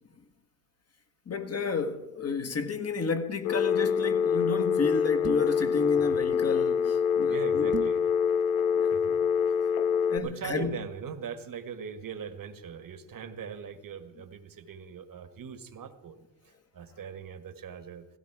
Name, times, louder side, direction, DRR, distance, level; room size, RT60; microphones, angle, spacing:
voice 1, 1.3-7.9 8.7-9.1 10.1-10.8, left 4 dB, 30° left, 1.6 m, -31 dB
Telephone, 3.4-10.2, left 7 dB, 80° left, 1.0 m, -25 dB
sound 1, 5.2-5.6 7.7-8.1, right 6 dB, 25° right, 0.9 m, -36 dB
voice 2, 7.3-8.1 8.9-9.1 9.5-9.6 10.2-18.1, right 7 dB, 45° right, 1.6 m, -41 dB
16.0 x 16.0 x 4.8 m
supercardioid pair, 85°, 46 cm